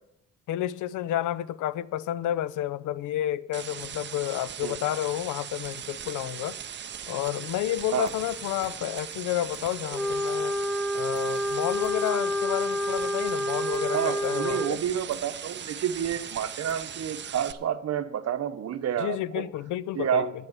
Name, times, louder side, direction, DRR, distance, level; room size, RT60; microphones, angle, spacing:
voice 1, 0.5-6.6 7.1-10.5 10.9-14.8 19.0-20.3, left 13 dB, 80° left, 0.6 m, -30 dB
sound 1, 3.5-17.5, right 8 dB, 40° right, 0.6 m, -39 dB
sound 2, 8.1-8.7 9.5-10.2 11.1-11.9 13.7-14.3 15.1-16.8, left 2 dB, 35° left, 1.9 m, -49 dB
Wind instrument woodwind instrument, 9.9-14.8, equal, ahead, 1.0 m, -28 dB
voice 2, 13.9-19.5 19.9-20.3, right 9 dB, 55° right, 1.0 m, -29 dB
9.0 x 8.0 x 7.3 m
cardioid pair, 90°, 30 cm